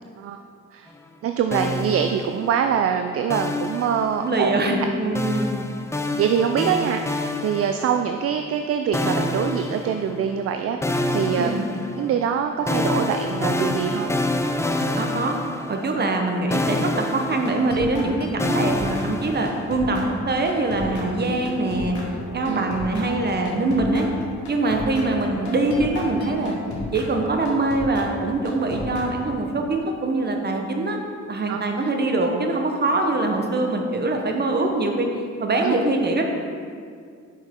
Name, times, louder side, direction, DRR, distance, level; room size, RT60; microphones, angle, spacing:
voice 1, 1.2-4.5 6.2-11.7 12.0-14.1 22.4-22.7 31.5-31.6 35.6-35.8, right 8 dB, 50° right, 6 dB, 0.4 m, -24 dB
sound 1, 1.5-2.7 3.3-4.5 5.1-8.2 8.9-10.5 10.8-16.3 16.5-19.8, left 1 dB, 10° left, 0.5 m, -27 dB
voice 2, 4.2-5.5 11.4-11.6 14.9-15.4 15.7-22.0 22.3-24.1 24.5-26.6 26.9-31.0 31.3-35.1 35.4-36.2, right 2 dB, 35° right, 3 dB, 1.1 m, -23 dB
sound 2, 17.3-29.7, left 1 dB, 70° left, 1.7 m, -34 dB
7.9 x 6.2 x 3.7 m, 2.2 s
cardioid pair, 90°, 30 cm